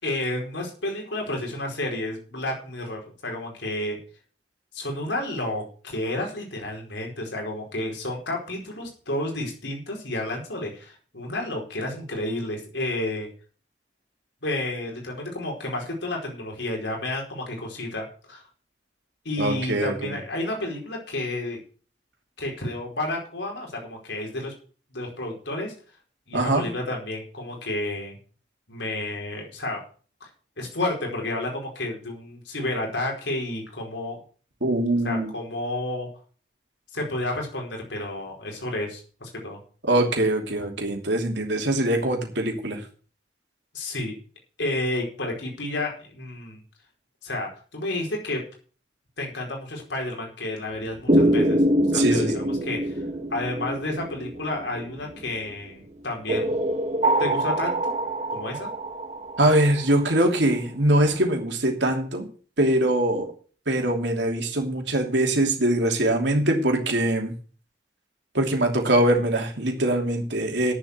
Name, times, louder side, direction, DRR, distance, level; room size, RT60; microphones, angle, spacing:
voice 1, 0.0-4.0 4.7-13.3 14.4-18.4 19.2-21.6 22.4-24.5 24.9-25.7 26.3-28.2 28.7-29.8 30.2-30.3 30.6-34.2 35.0-36.1 36.9-39.6 43.7-44.2 44.6-46.6 47.2-48.4 49.2-51.6 51.9-53.0 53.3-56.5 57.2-57.9 58.3-58.7, left 1 dB, 85° left, 0 dB, 4.7 m, -31 dB
voice 2, 19.4-20.2 26.3-26.7 34.6-35.3 39.8-42.8 51.9-52.3 59.4-62.3 62.6-63.3 63.7-67.3 68.3-70.7, right 1 dB, 75° right, 3 dB, 2.9 m, -22 dB
sound 1, 51.1-55.3 56.3-60.1, right 1 dB, 35° right, 1.4 m, -24 dB
9.6 x 7.4 x 8.0 m, 0.41 s
head